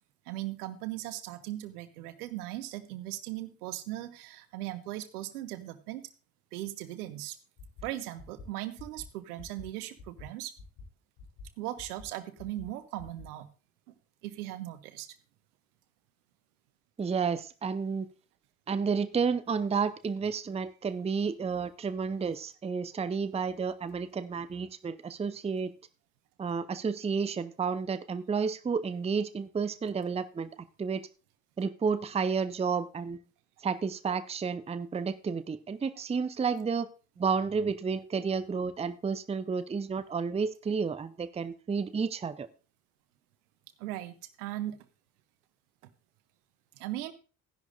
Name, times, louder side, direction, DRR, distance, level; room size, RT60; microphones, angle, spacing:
voice 1, 0.3-6.1 6.5-7.4 7.8-10.5 11.6-13.5 13.9-14.0 14.2-15.1 43.8-44.8 46.8-47.1, right 15 dB, 70° right, 14 dB, 0.9 m, -38 dB
sound 1, 7.6-7.8 8.2-8.5 8.8-9.0 9.4-9.6 10.0-10.2 10.6-10.8 11.2-11.5 11.8-12.1 12.4-12.7 13.0-13.2, left 4 dB, 60° left, 3.5 m, -48 dB
voice 2, 17.0-18.1 18.7-25.7 26.4-30.5 30.8-31.1 31.6-33.2 33.6-36.9 37.2-42.5, right 5 dB, 15° right, 14 dB, 0.6 m, -31 dB
14.0 x 10.5 x 2.6 m, 0.35 s
figure-of-eight pair, 40°, 47 cm